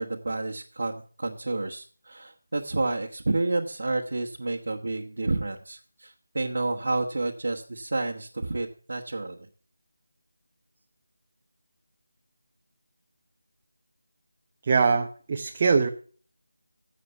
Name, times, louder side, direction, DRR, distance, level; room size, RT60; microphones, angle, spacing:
voice 1, 0.0-9.5, right 2 dB, 65° right, 0 dB, 1.3 m, -30 dB
voice 2, 14.6-15.9, right 5 dB, 30° right, 2 dB, 0.9 m, -22 dB
11.0 x 7.5 x 6.8 m, 0.42 s
figure-of-eight pair, 165°, 0 cm